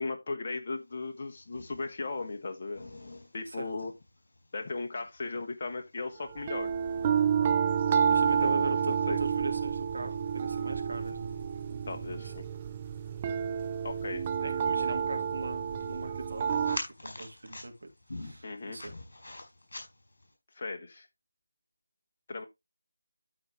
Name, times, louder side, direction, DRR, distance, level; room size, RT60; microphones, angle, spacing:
voice 1, 0.0-2.9 3.3-3.9 4.5-6.7 8.4-9.2 11.9-12.4 13.8-14.3 18.4-18.8 20.5-21.1 22.3-22.4, left 3 dB, 35° left, 1.2 m, -37 dB
sound 1, 0.9-20.3, left 2 dB, 55° left, 4.7 m, -49 dB
sound 2, 6.4-16.8, right 7 dB, 20° right, 0.5 m, -29 dB
voice 2, 8.1-11.4 11.7-12.3 14.4-18.9, right 2 dB, 60° right, 2.7 m, -40 dB
13.0 x 4.9 x 3.2 m
figure-of-eight pair, 160°, 0 cm